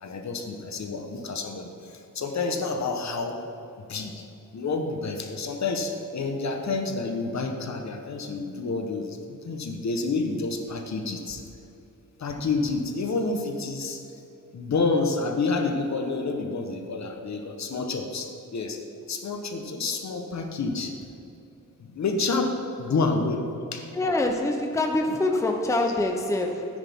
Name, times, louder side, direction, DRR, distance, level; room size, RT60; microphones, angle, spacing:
voice 1, 0.0-3.4 3.9-4.2 4.5-11.4 12.2-14.1 14.5-18.8 19.1-20.9 21.8-23.9, left 3 dB, 55° left, 4 dB, 1.1 m, -29 dB
voice 2, 23.9-26.7, left 2 dB, 10° left, 3 dB, 0.7 m, -25 dB
13.5 x 9.9 x 3.6 m, 2.9 s
wide cardioid pair, 160°, 33 cm